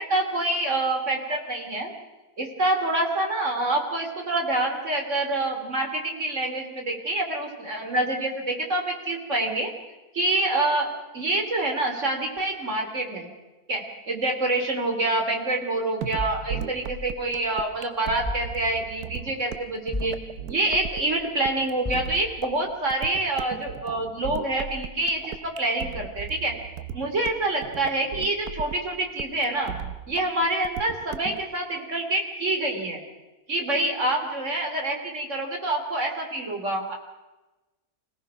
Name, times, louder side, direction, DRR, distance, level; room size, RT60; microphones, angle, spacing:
voice 1, 0.0-1.9 2.4-9.7 10.1-10.9 11.1-13.3 13.7-20.1 20.5-26.6 26.9-29.7 30.1-33.0 33.5-36.9, right 2 dB, 50° right, 3 dB, 3.3 m, -26 dB
sound 1, 16.0-31.4, right 8 dB, 80° right, 1.4 m, -37 dB
sound 2, 16.2-17.6 18.2-19.1 19.9-20.8 21.8-22.7, left 2 dB, 5° left, 4.3 m, -37 dB
25.5 x 18.0 x 5.7 m, 1.1 s
omnidirectional pair, 1.6 m